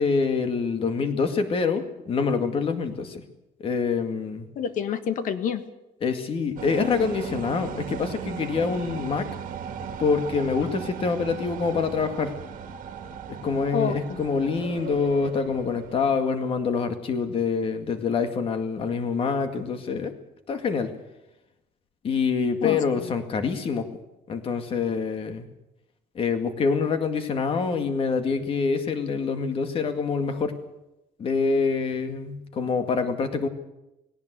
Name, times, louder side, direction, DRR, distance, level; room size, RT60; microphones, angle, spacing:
voice 1, 0.0-3.2 3.6-4.5 6.0-9.3 10.0-12.3 13.3-20.1 20.5-20.9 22.0-23.9 24.3-25.5 26.2-30.6 31.2-33.5, left 5 dB, 35° left, 7 dB, 2.1 m, -26 dB
voice 2, 4.5-5.6 13.7-14.3 22.6-23.1, left 7 dB, 55° left, 10 dB, 1.5 m, -28 dB
sound 1, 6.6-16.2, right 7 dB, 55° right, 1.9 m, -37 dB
19.0 x 18.0 x 8.1 m, 0.94 s
cardioid pair, 175°, 16 cm